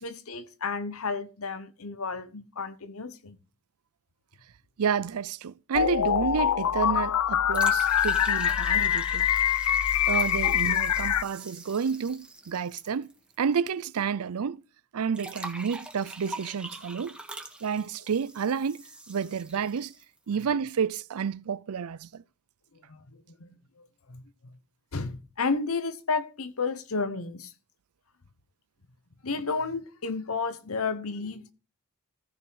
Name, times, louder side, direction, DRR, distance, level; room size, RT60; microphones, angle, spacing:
voice 1, 0.0-3.4 10.4-10.5 22.9-23.0 23.4-24.6 24.9-27.5 29.2-31.5, left 4 dB, 70° left, 1.1 m, -32 dB
voice 2, 4.8-9.3 10.1-13.1 13.4-14.6 14.9-17.2 17.6-19.9 20.3-22.2, right 6 dB, 80° right, 0.5 m, -30 dB
sound 1, 5.7-11.2, left 10 dB, 85° left, 0.4 m, -24 dB
sound 2, 7.5-13.7 13.9-14.0 15.1-20.2, right 2 dB, 5° right, 1.6 m, -43 dB
14.0 x 6.0 x 4.7 m
head